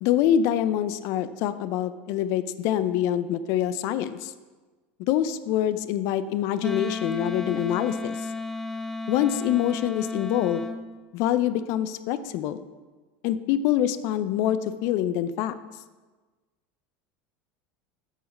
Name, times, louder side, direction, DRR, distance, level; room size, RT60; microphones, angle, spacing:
voice 1, 0.0-4.3 5.1-8.3 9.1-10.7 11.1-12.6 13.2-15.5, left 11 dB, 55° left, 13 dB, 0.5 m, -25 dB
Wind instrument woodwind instrument, 6.6-10.8, left 3 dB, 5° left, 0.5 m, -33 dB
7.9 x 5.0 x 5.2 m, 1.3 s
supercardioid pair, 130°, 6 cm